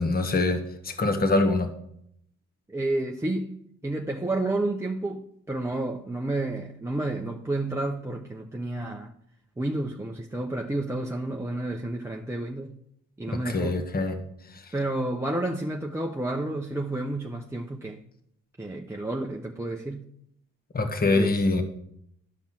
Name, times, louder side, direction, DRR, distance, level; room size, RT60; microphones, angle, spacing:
voice 1, 0.0-1.7 13.4-14.2 20.7-21.6, left 2 dB, 30° left, 1.3 m, -24 dB
voice 2, 2.7-3.6 3.8-9.1 9.6-12.8 13.2-13.8 14.7-18.0 18.6-20.1 21.0-21.4, right 2 dB, 10° right, 0.7 m, -30 dB
12.0 x 5.4 x 6.0 m
cardioid pair, 90°, 30 cm